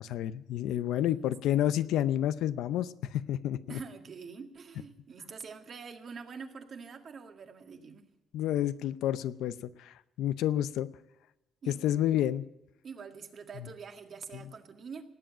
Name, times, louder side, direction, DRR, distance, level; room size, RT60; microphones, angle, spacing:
voice 1, 0.0-3.8 8.3-10.9 11.7-12.4, left 12 dB, 90° left, 14 dB, 0.6 m, -30 dB
voice 2, 1.1-1.6 3.7-8.1 11.6-12.1 12.8-15.0, right 5 dB, 50° right, 5 dB, 1.9 m, -46 dB
18.5 x 8.0 x 8.8 m, 0.96 s
cardioid pair, 90°, 0 cm